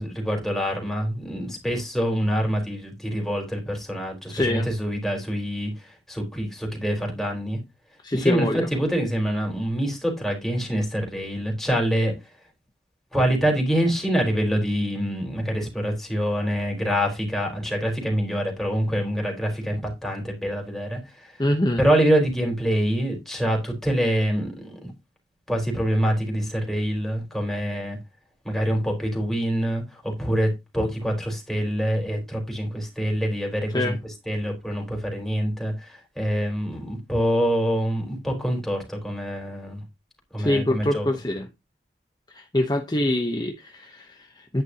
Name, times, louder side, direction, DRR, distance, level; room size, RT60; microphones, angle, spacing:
voice 1, 0.0-7.6 8.1-12.1 13.1-21.3 21.8-24.9 25.5-28.0 28.4-33.9 34.3-39.8 40.3-41.1, equal, ahead, 4.1 m, -25 dB
voice 2, 4.3-4.7 8.0-8.7 21.4-21.8 33.7-34.0 40.4-41.5 42.3-44.6, left 1 dB, 25° left, 0.9 m, -25 dB
10.5 x 10.5 x 2.9 m
head